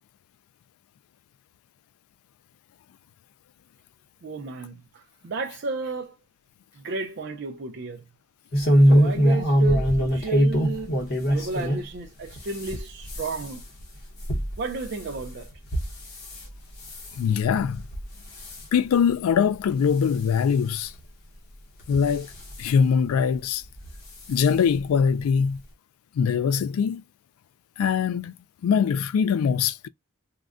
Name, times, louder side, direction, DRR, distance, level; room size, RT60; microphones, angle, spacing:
voice 1, 4.2-6.1 6.8-8.0 8.8-11.0 11.3-13.6 14.6-15.5 17.3-17.4, right 4 dB, 50° right, 0.4 m, -33 dB
sound 1, 8.5-11.9 12.3-16.4 16.8-17.2 17.7-18.1 18.3-18.6 19.3-19.4 19.7-19.8 20.9-21.0 21.8-22.6 23.8-24.0 24.3-24.4 24.7-24.8, equal, 50° left, 0.8 m, -23 dB
voice 2, 17.2-17.8 18.7-20.9 21.9-22.3 22.6-23.6 24.3-25.6 26.2-27.0 27.8-28.3 28.6-29.9, left 7 dB, 85° left, 0.3 m, -22 dB
3.7 x 2.1 x 2.3 m
head